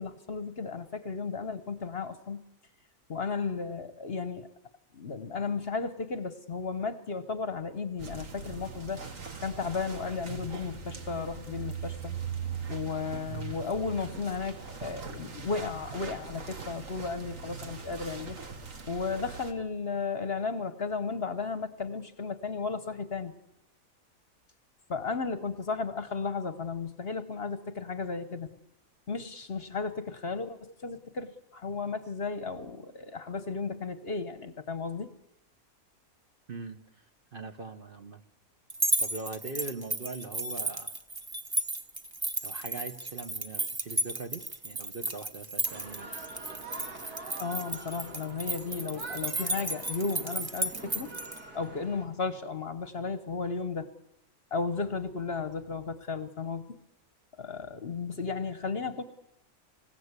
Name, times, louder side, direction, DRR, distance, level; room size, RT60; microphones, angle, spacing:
voice 1, 0.0-2.4 3.1-4.5 4.9-9.0 9.4-12.2 12.7-18.4 18.9-23.3 24.9-28.5 29.1-35.1 47.4-51.1 51.5-53.9 54.5-56.8 57.4-59.0, left 4 dB, 45° left, 11 dB, 1.1 m, -34 dB
sound 1, 8.0-19.5, right 6 dB, 60° right, 2.1 m, -40 dB
voice 2, 36.5-37.0 37.3-38.2 39.0-41.0 42.4-46.1, right 3 dB, 40° right, 7 dB, 1.1 m, -41 dB
sound 2, 38.7-51.4, right 1 dB, 20° right, 0.7 m, -33 dB
sound 3, 45.6-52.1, right 3 dB, 80° right, 3.0 m, -45 dB
26.5 x 16.5 x 8.2 m, 0.88 s
omnidirectional pair, 1.6 m